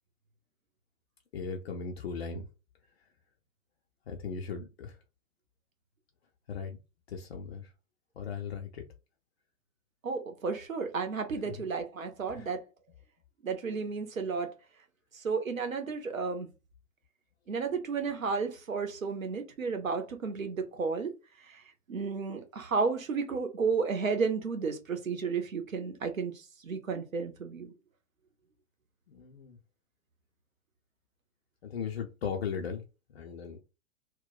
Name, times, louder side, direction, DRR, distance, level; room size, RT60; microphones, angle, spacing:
voice 1, 1.3-2.5 4.1-5.0 6.5-6.8 7.1-7.7 8.2-8.8 11.4-11.5 12.3-12.5 29.1-29.6 31.6-32.8 33.1-33.6, left 6 dB, 50° left, 0.5 m, -37 dB
voice 2, 10.0-12.6 13.4-14.5 15.1-16.5 17.5-21.1 21.9-26.3 26.6-27.7, right 5 dB, 80° right, 0.8 m, -32 dB
2.3 x 2.1 x 3.8 m
figure-of-eight pair, 110°, 40 cm